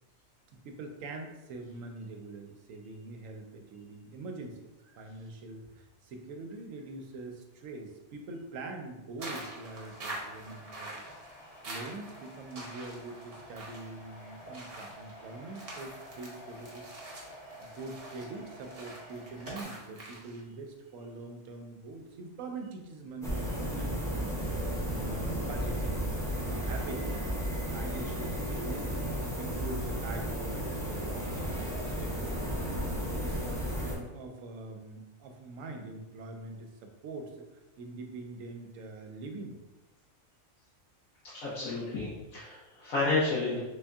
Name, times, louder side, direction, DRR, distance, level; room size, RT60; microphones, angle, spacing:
voice 1, 0.5-11.1 11.6-24.3 24.8-32.8 33.1-33.4 33.8-39.6, right 2 dB, 75° right, 4 dB, 1.0 m, -44 dB
sound 1, 9.2-20.4, right 2 dB, 50° right, 1.0 m, -46 dB
sound 2, 9.4-19.6, equal, 20° right, 1.6 m, -50 dB
sound 3, 23.2-34.0, equal, 5° left, 0.4 m, -33 dB
voice 2, 41.3-43.7, left 3 dB, 85° left, -10 dB, 1.5 m, -31 dB
3.5 x 2.6 x 3.4 m, 1.1 s
omnidirectional pair, 1.4 m